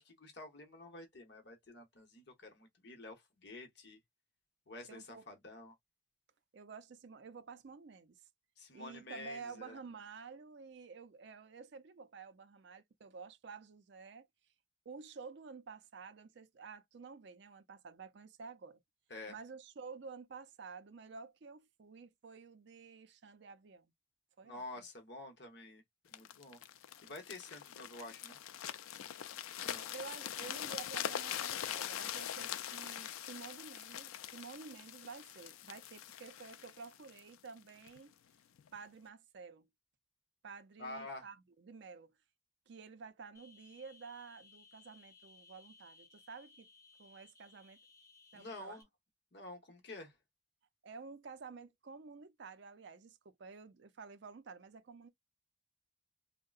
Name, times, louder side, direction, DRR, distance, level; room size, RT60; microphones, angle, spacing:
voice 1, 0.0-4.0 4.7-5.7 8.6-9.8 19.1-19.3 24.4-25.8 26.1-26.6 27.0-28.4 29.6-29.9 40.8-41.3 48.3-48.8 49.3-50.2, left 2 dB, 55° left, 0.9 m, -49 dB
voice 2, 4.9-5.2 6.5-8.2 8.7-14.3 14.9-18.8 19.3-23.9 24.4-24.8 29.9-38.1 38.7-39.7 40.4-42.1 42.7-46.7 47.0-47.8 48.3-48.8 50.8-55.1, right 5 dB, 55° right, 0.4 m, -51 dB
sound 1, 26.1-38.0 38.6-38.8, left 10 dB, 90° left, 0.4 m, -43 dB
sound 2, 43.3-48.8, left 4 dB, 15° left, 0.6 m, -62 dB
3.6 x 2.1 x 2.3 m
head